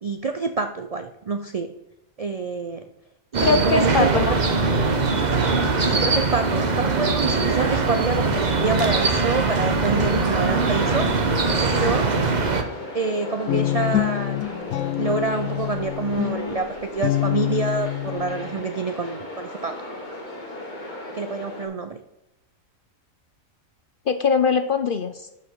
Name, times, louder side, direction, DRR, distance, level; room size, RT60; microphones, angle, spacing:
voice 1, 0.0-1.7 2.2-2.9 3.3-4.3 5.8-11.1 11.6-12.1 12.9-14.7 15.0-19.8 21.1-22.0, right 4 dB, 55° right, 8 dB, 0.4 m, -27 dB
sound 1, 3.3-12.6, right 3 dB, 35° right, 1.0 m, -21 dB
voice 2, 3.4-4.3 4.8-4.9 24.1-25.3, left 5 dB, 55° left, 9 dB, 0.6 m, -22 dB
sound 2, 10.6-21.6, left 1 dB, 35° left, 2.2 m, -36 dB
Guitar, 13.5-18.7, left 15 dB, 80° left, 1.0 m, -26 dB
11.0 x 5.9 x 4.6 m, 0.94 s
omnidirectional pair, 1.4 m